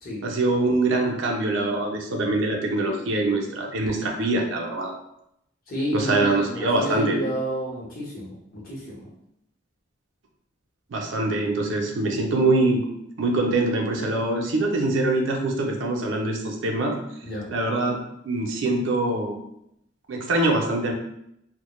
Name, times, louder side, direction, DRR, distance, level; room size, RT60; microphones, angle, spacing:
voice 1, 0.2-4.9 5.9-7.2 10.9-12.8 13.2-17.0 17.5-18.0 18.2-19.3 20.1-20.9, right 2 dB, 85° right, 1 dB, 0.5 m, -24 dB
voice 2, 5.7-9.1 17.2-17.5, equal, 45° left, -5 dB, 0.8 m, -30 dB
2.1 x 2.0 x 2.9 m, 0.78 s
head